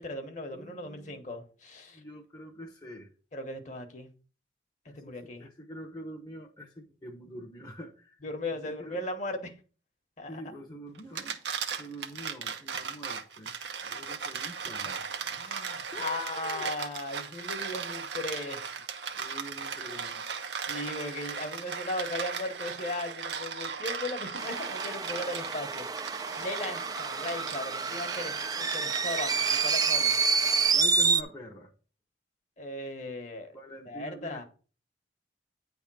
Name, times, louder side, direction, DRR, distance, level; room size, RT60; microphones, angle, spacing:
voice 1, 0.0-2.0 3.3-4.1 4.8-5.5 8.2-9.5 10.2-10.4 15.3-18.7 20.7-25.9 26.1-30.2 32.6-33.6 33.8-34.4, left 1 dB, 45° left, 1.2 m, -37 dB
voice 2, 0.5-1.2 1.9-3.1 4.9-8.2 8.6-9.0 10.3-11.4 11.8-13.5 13.9-15.0 15.9-16.6 19.2-20.2 24.3-24.4 30.7-31.7 33.5-34.4, equal, 25° left, 0.9 m, -45 dB
sound 1, 11.0-30.0, right 6 dB, 85° right, 1.0 m, -37 dB
sound 2, 24.4-31.2, right 5 dB, 20° right, 0.4 m, -28 dB
9.4 x 3.6 x 6.1 m
head